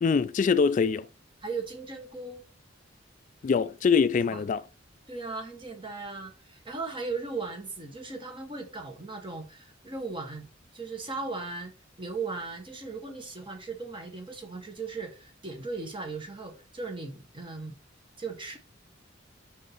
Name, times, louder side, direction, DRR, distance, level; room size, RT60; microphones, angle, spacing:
voice 1, 0.0-1.1 3.4-4.6, left 5 dB, 40° left, 0.3 m, -24 dB
voice 2, 1.4-2.4 4.3-4.4 5.1-10.5 10.7-17.7 18.2-18.6, right 3 dB, 25° right, 1.8 m, -37 dB
5.7 x 5.1 x 6.0 m
head